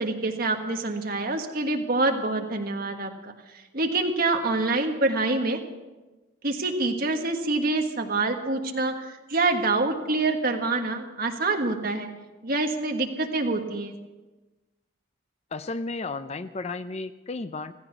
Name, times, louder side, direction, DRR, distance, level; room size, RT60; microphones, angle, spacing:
voice 1, 0.0-3.3 3.7-5.6 6.4-12.1 12.4-13.9, right 2 dB, 45° right, 4 dB, 1.5 m, -26 dB
voice 2, 15.5-17.7, left 3 dB, 30° left, 12 dB, 0.4 m, -33 dB
15.5 x 15.0 x 5.9 m, 1.1 s
head